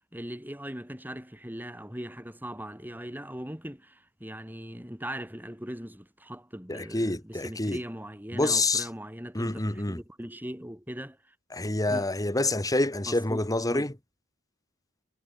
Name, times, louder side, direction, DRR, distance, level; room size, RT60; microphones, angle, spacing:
voice 1, 0.1-11.2 11.9-12.1 13.0-13.4 13.7-13.9, equal, 10° right, 7.9 m, -40 dB
voice 2, 6.7-7.8 8.3-8.9 9.3-10.0 11.5-13.9, left 2 dB, 15° left, 1.7 m, -27 dB
head